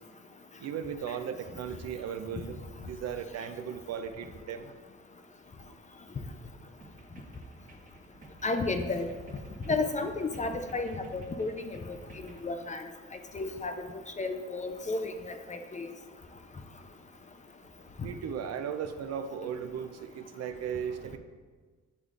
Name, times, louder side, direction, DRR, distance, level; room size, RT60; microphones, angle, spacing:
voice 1, 0.6-4.7 18.0-21.2, right 8 dB, 60° right, 9 dB, 0.5 m, -37 dB
sound 1, 6.8-12.5, right 2 dB, 25° right, 1.1 m, -52 dB
voice 2, 8.4-9.1 9.7-11.8 12.2-12.8 13.3-13.9 14.2-15.9, left 3 dB, 25° left, 7 dB, 0.4 m, -32 dB
8.1 x 5.0 x 2.4 m, 1.5 s
cardioid pair, 90°, 30 cm